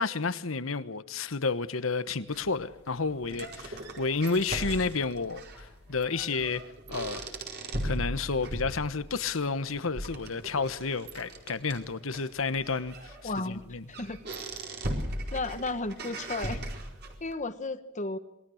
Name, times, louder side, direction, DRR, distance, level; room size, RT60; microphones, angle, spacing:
voice 1, 0.0-6.6 6.9-7.3 7.8-13.8, left 4 dB, 90° left, 1.2 m, -31 dB
sound 1, 2.3-17.3, right 1 dB, 55° right, 4.7 m, -39 dB
voice 2, 13.2-13.6 14.0-14.2 15.3-16.6 17.2-18.2, left 3 dB, 40° left, 1.4 m, -33 dB
27.0 x 21.0 x 6.5 m
head